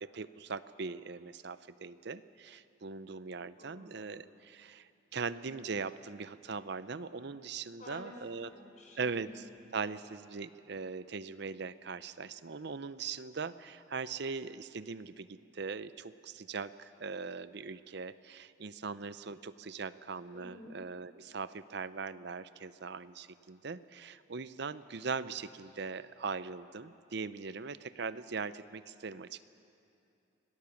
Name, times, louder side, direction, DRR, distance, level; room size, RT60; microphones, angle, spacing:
voice 1, 0.0-8.5 9.0-9.4 9.7-29.4, right 5 dB, 60° right, 14 dB, 0.6 m, -40 dB
voice 2, 3.6-4.2 7.8-9.3 20.3-20.8, left 1 dB, 40° left, 1 dB, 4.0 m, -51 dB
26.0 x 18.0 x 7.1 m, 2.6 s
head